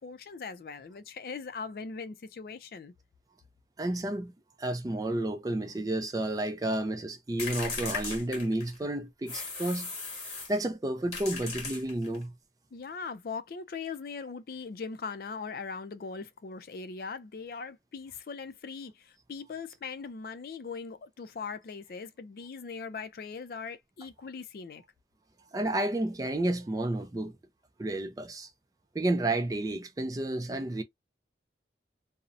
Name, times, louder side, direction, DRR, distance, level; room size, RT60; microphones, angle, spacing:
voice 1, 0.0-2.9 12.7-24.8, left 5 dB, 55° left, 0.4 m, -40 dB
voice 2, 3.8-4.3 4.6-9.9 10.5-12.3 25.5-27.3 27.8-28.5 28.9-30.8, right 1 dB, 20° right, 0.3 m, -31 dB
sound 1, 7.4-8.8 9.3-10.6 11.1-12.2, left 4 dB, 40° left, 1.1 m, -37 dB
2.6 x 2.0 x 2.4 m
head